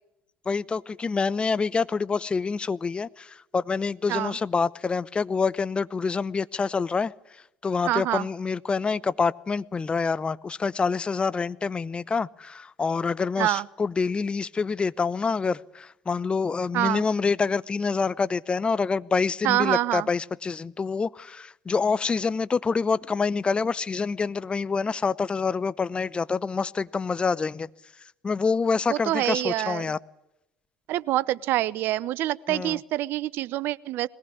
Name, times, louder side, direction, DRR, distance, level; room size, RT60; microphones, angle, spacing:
voice 1, 0.5-7.1 7.6-27.7 28.2-30.0 32.5-32.8, left 4 dB, 25° left, 19 dB, 0.8 m, -26 dB
voice 2, 7.8-8.3 13.4-13.7 16.7-17.0 19.4-20.1 28.9-29.9 30.9-34.1, right 15 dB, 60° right, 20 dB, 0.8 m, -26 dB
21.5 x 18.5 x 9.9 m, 0.90 s
hypercardioid pair, 65°, 4 cm